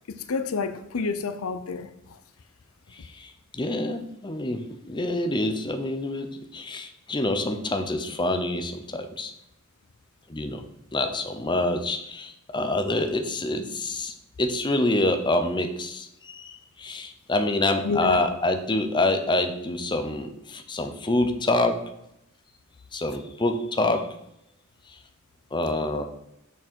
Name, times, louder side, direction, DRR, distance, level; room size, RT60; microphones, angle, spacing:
voice 1, 0.1-2.2 17.8-18.3, left 4 dB, 90° left, 0.6 m, -29 dB
voice 2, 2.9-9.3 10.3-10.6 10.9-21.9 22.9-24.1 25.5-26.0, left 2 dB, 20° left, 0.7 m, -27 dB
6.6 x 6.3 x 4.5 m
head